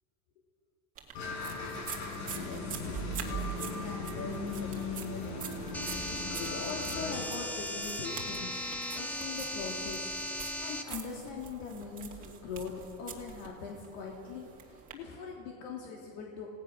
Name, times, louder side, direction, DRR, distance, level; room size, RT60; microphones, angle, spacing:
sound 1, 1.0-14.9, right 8 dB, 20° right, 2.1 m, -45 dB
sound 2, 1.1-7.2, left 3 dB, 60° left, 4.8 m, -38 dB
voice 1, 2.4-5.9 6.1-8.7 8.9-12.7 13.0-16.5, left 5 dB, 85° left, 0 dB, 3.1 m, -42 dB
sound 3, 5.7-10.8, left 1 dB, 5° left, 0.9 m, -37 dB
28.0 x 17.5 x 6.2 m, 2.5 s
cardioid pair, 175°, 39 cm